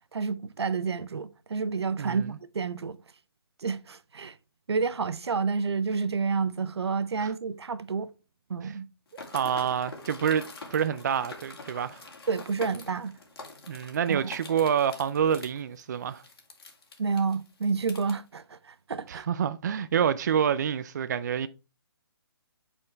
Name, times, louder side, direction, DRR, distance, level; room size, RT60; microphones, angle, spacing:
voice 1, 0.1-3.0 3.6-4.4 4.7-8.1 8.5-8.9 12.3-13.1 14.1-14.3 17.0-19.3, right 5 dB, 85° right, 0.7 m, -29 dB
voice 2, 2.0-2.4 7.2-7.3 8.6-8.7 9.3-12.0 13.7-16.2 19.1-21.5, right 8 dB, 45° right, 0.4 m, -27 dB
sound 1, 9.1-18.1, left 3 dB, 65° left, 2.4 m, -45 dB
8.4 x 4.5 x 3.3 m
hypercardioid pair, 160°, 14 cm